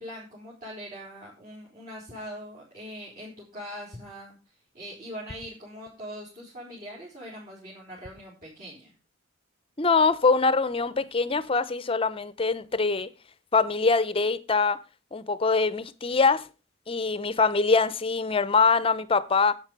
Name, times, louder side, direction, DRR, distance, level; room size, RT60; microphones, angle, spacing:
voice 1, 0.0-8.9, equal, 45° right, 4.2 m, -42 dB
voice 2, 9.8-13.1 13.5-14.8 15.1-16.5 16.9-19.5, left 4 dB, 25° left, 0.6 m, -23 dB
10.5 x 8.1 x 5.3 m
head